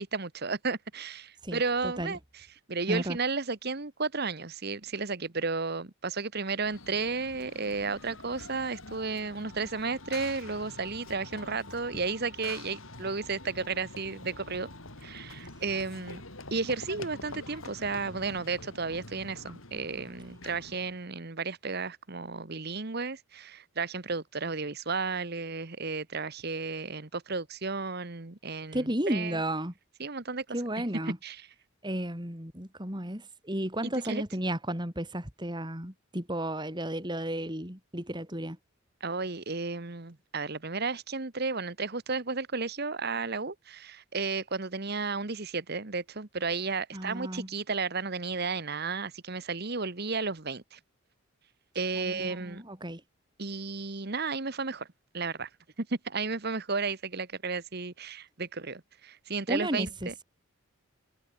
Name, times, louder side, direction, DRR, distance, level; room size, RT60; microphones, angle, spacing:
voice 1, 0.0-2.2 2.7-14.7 15.0-16.2 16.5-29.4 30.0-30.4 31.2-31.5 33.8-34.2 39.0-50.8 51.7-52.6 53.4-54.9 55.1-55.5 55.8-60.1, right 4 dB, 45° right, 1.3 m, -33 dB
voice 2, 1.4-2.2 2.9-3.2 28.7-29.7 30.5-31.2 31.8-38.6 46.9-47.5 51.9-53.0 59.5-60.1, right 1 dB, 20° right, 4.8 m, -33 dB
Run / Train, 6.6-21.0, left 2 dB, 70° left, 7.9 m, -46 dB
head